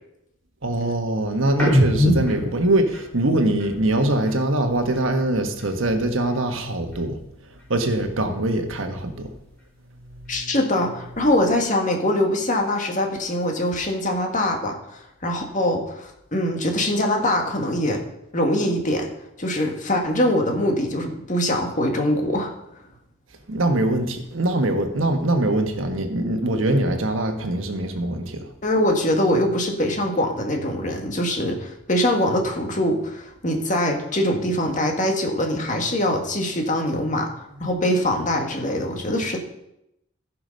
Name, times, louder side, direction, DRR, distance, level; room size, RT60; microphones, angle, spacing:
voice 1, 0.6-7.2 7.7-9.3 23.5-28.4 37.6-37.7, right 1 dB, 75° right, 6 dB, 1.4 m, -23 dB
sound 1, 1.5-5.1 5.4-7.3 7.5-9.4 9.8-11.6, equal, 10° left, 4.2 m, -28 dB
voice 2, 10.3-18.0 18.3-19.1 19.4-22.5 28.6-37.3 37.6-39.4, left 1 dB, 40° left, 2 dB, 1.8 m, -23 dB
14.5 x 6.1 x 5.3 m, 0.83 s
head